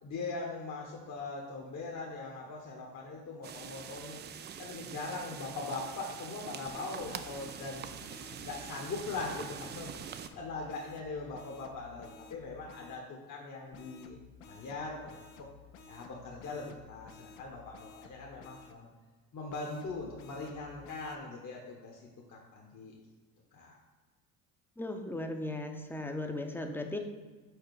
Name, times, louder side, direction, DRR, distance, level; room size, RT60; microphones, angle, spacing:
voice 1, 0.0-4.2 4.6-7.9 8.4-9.9 10.3-14.2 14.5-15.5 15.9-18.9 19.3-22.0 22.3-22.9 23.5-23.8, left 3 dB, 45° left, -1 dB, 1.1 m, -41 dB
sound 1, 3.4-10.3, right 8 dB, 25° right, 0.3 m, -45 dB
sound 2, 6.7-13.0 13.7-18.8 19.5-21.2, left 6 dB, 75° left, 0.7 m, -54 dB
voice 2, 24.8-27.0, left 2 dB, 5° left, 5 dB, 0.7 m, -37 dB
4.9 x 4.3 x 4.7 m, 1.4 s
hypercardioid pair, 65°, 41 cm